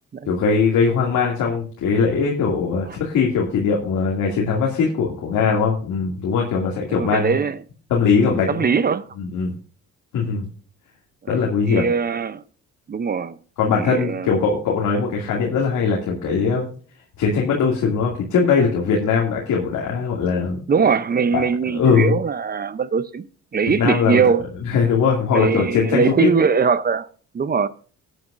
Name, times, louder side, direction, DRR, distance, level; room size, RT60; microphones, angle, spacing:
voice 1, 0.3-7.3 7.9-8.7 9.2-9.5 10.1-10.5 11.3-11.9 13.6-16.7 17.2-20.6 21.3-21.4 21.7-22.1 23.8-24.2 24.7-26.3, left 5 dB, 80° left, 2.4 m, -20 dB
voice 2, 6.9-7.6 8.3-9.1 11.2-12.4 12.9-13.4 13.8-14.4 20.7-23.3 23.5-24.4 25.3-27.1 27.3-27.7, right 6 dB, 30° right, 0.6 m, -21 dB
15.5 x 9.4 x 2.6 m
cardioid pair, 90°, 30 cm